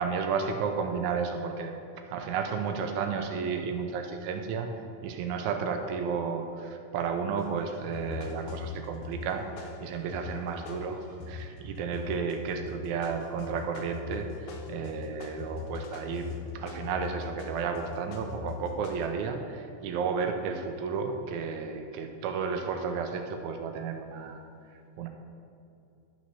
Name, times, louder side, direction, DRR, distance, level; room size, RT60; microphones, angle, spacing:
voice 1, 0.0-1.7 2.1-4.7 5.0-16.3 16.5-24.4 25.0-25.1, right 5 dB, 90° right, 4 dB, 2.1 m, -32 dB
sound 1, 7.4-7.5 7.9-11.5 11.9-12.4 12.7-19.0, left 6 dB, 90° left, 2.3 m, -40 dB
11.5 x 6.1 x 5.6 m, 2.6 s
omnidirectional pair, 3.4 m